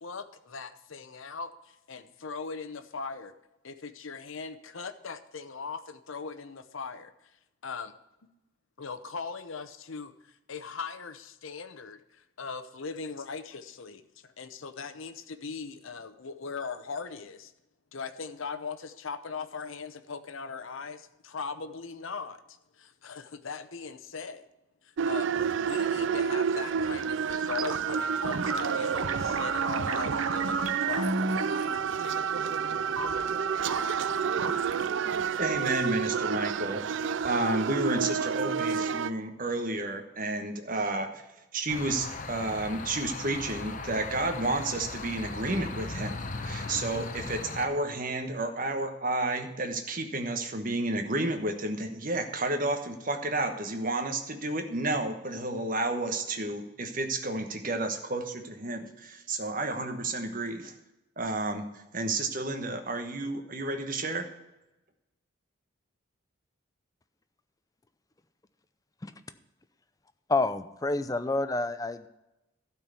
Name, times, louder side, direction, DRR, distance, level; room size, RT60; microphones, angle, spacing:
voice 1, 0.0-3.3 3.6-7.4 7.6-7.9 8.8-17.5 17.9-24.4 24.8-25.3 25.6-31.7 32.0-32.6, left 5 dB, 70° left, 10 dB, 0.8 m, -40 dB
sound 1, 25.0-39.1, right 6 dB, 60° right, 0.3 m, -30 dB
sound 2, 27.5-36.4, right 4 dB, 80° right, 0.8 m, -33 dB
voice 2, 35.3-41.2 41.5-60.7 61.2-64.3, right 2 dB, 40° right, 6 dB, 1.2 m, -31 dB
sound 3, 41.7-47.7, left 3 dB, 35° left, 0.8 m, -38 dB
voice 3, 70.3-72.1, left 2 dB, 15° left, 11 dB, 0.4 m, -28 dB
12.5 x 4.5 x 8.3 m, 0.95 s
head